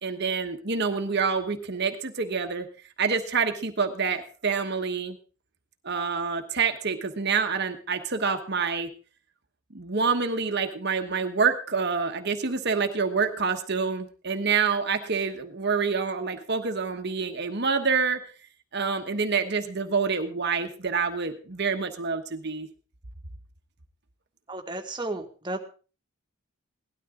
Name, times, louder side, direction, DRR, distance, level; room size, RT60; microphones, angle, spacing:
voice 1, 0.0-2.7 3.0-5.2 5.8-8.9 9.7-18.2 18.7-22.7, right 5 dB, 50° right, 6 dB, 1.2 m, -27 dB
voice 2, 24.5-25.6, right 2 dB, 20° right, 3 dB, 1.7 m, -33 dB
17.5 x 12.5 x 3.7 m, 0.36 s
head